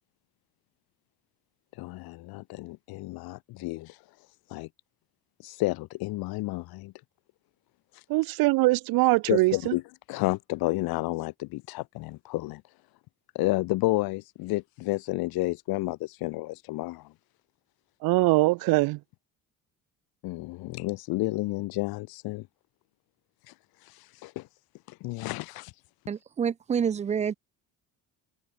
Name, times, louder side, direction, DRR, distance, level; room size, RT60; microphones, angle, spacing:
voice 1, 1.7-4.7 5.4-6.9 7.9-8.0 9.3-9.8 10.1-12.6 13.3-17.1 20.2-22.5 23.5-24.5 24.9-25.7, left 20 dB, 80° left, 0.9 m, -31 dB
voice 2, 8.1-9.7 18.0-19.0, right 21 dB, 75° right, 0.6 m, -22 dB
voice 3, 26.1-27.3, right 7 dB, 20° right, 0.3 m, -28 dB
cardioid pair, 120°, 36 cm